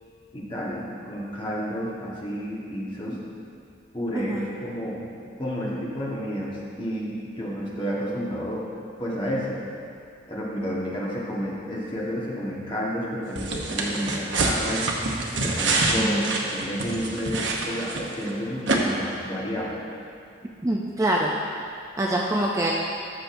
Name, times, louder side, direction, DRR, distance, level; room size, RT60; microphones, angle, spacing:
voice 1, 0.3-3.2 3.9-5.1 5.4-8.7 9.0-9.6 10.3-14.9 15.4-19.8, equal, 25° left, -5 dB, 1.3 m, -31 dB
voice 2, 4.1-4.5 15.9-16.3 20.6-21.3 22.0-22.7, right 1 dB, 15° right, -2 dB, 0.4 m, -25 dB
sound 1, 13.4-18.3 18.7-18.8, right 3 dB, 70° right, 0.8 m, -26 dB
13.0 x 6.4 x 2.6 m, 2.5 s
head